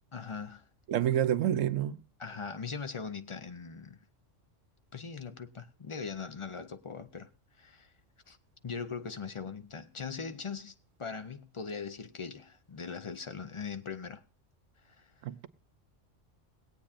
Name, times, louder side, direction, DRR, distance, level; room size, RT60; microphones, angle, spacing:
voice 1, 0.1-0.7 1.1-1.2 2.2-4.0 4.9-7.3 7.6-7.9 8.3-8.4 8.6-14.2 14.8-15.1, left 5 dB, 40° left, 0.4 m, -40 dB
voice 2, 0.9-2.0 15.2-15.5, right 10 dB, 90° right, 1.1 m, -28 dB
22.0 x 8.6 x 2.5 m
omnidirectional pair, 1.3 m